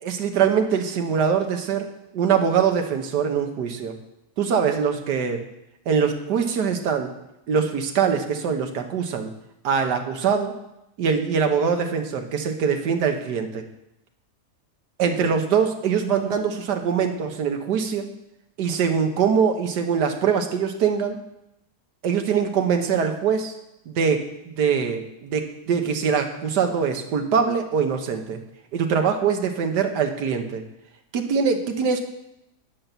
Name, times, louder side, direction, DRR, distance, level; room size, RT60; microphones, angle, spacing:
voice 1, 0.0-3.9 4.4-5.4 5.9-7.1 7.5-9.3 9.6-10.6 11.0-13.6 15.0-18.1 18.6-21.2 22.0-23.5 23.9-28.4 28.7-30.6 31.1-32.0, right 6 dB, 85° right, 5 dB, 1.7 m, -23 dB
11.0 x 5.9 x 6.7 m, 0.85 s
omnidirectional pair, 1.7 m